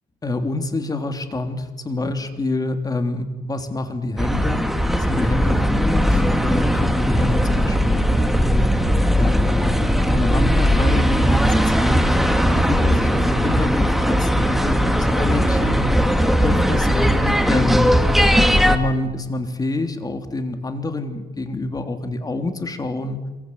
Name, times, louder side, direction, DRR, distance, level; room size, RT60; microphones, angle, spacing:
voice 1, 0.2-4.6 5.0-8.5 9.2-16.1 16.4-18.0 18.6-23.3, left 2 dB, 20° left, 7 dB, 3.4 m, -26 dB
sound 1, 4.2-18.8, equal, ahead, 2.1 m, -18 dB
27.0 x 24.0 x 8.3 m, 1.1 s
cardioid pair, 110°, 17 cm